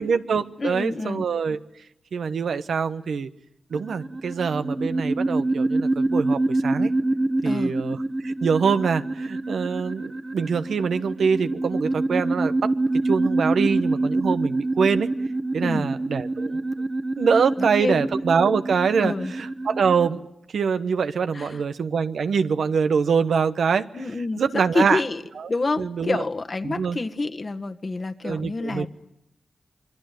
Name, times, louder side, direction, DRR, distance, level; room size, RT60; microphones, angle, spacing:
voice 1, 0.0-1.6 2.1-3.3 3.7-6.9 7.4-12.7 13.0-15.1 15.5-16.9 17.2-19.1 19.4-20.2 20.5-23.8 24.4-25.0 25.8-26.2 26.6-27.0 28.2-28.9, right 6 dB, 80° right, 10 dB, 1.1 m, -24 dB
voice 2, 0.6-1.2 7.4-7.7 15.6-15.9 17.6-18.0 19.0-19.3 21.3-21.6 23.9-25.2 25.5-28.9, left 3 dB, 45° left, 7 dB, 1.7 m, -28 dB
sound 1, 3.7-20.1, right 2 dB, 30° right, 1.3 m, -26 dB
27.0 x 22.0 x 9.3 m, 0.81 s
cardioid pair, 50°, 0 cm